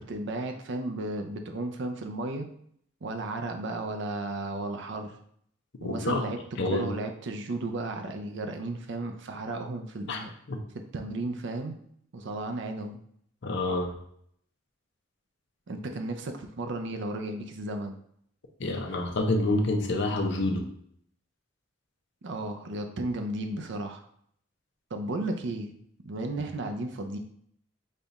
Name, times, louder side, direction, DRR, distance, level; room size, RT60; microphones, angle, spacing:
voice 1, 0.0-2.5 3.0-5.2 5.8-6.4 6.7-10.3 10.7-11.8 12.1-13.0 15.7-18.0 22.2-24.0 24.9-25.7 26.0-27.2, right 2 dB, 65° right, 5 dB, 0.5 m, -34 dB
voice 2, 5.8-6.2 6.6-6.9 10.1-10.6 13.4-13.9 18.6-20.6, left 2 dB, 65° left, 3 dB, 0.6 m, -28 dB
5.4 x 2.4 x 4.0 m, 0.67 s
head